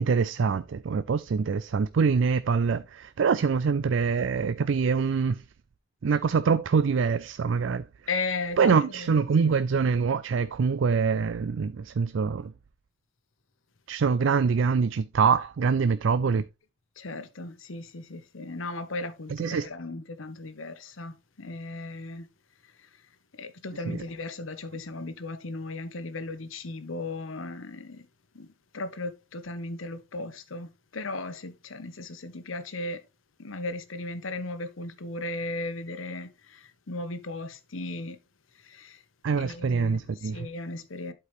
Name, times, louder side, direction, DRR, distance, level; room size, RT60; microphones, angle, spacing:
voice 1, 0.0-5.4 6.0-7.9 8.6-12.5 13.9-16.4 19.3-19.7 23.9-24.0 39.2-40.5, right 5 dB, 70° right, 0.4 m, -24 dB
voice 2, 8.1-9.6 17.0-22.3 23.4-28.1 28.3-28.5 28.7-33.0 33.4-38.2 38.6-39.0 39.4-41.1, left 2 dB, 85° left, 1.0 m, -36 dB
11.5 x 4.6 x 3.1 m
head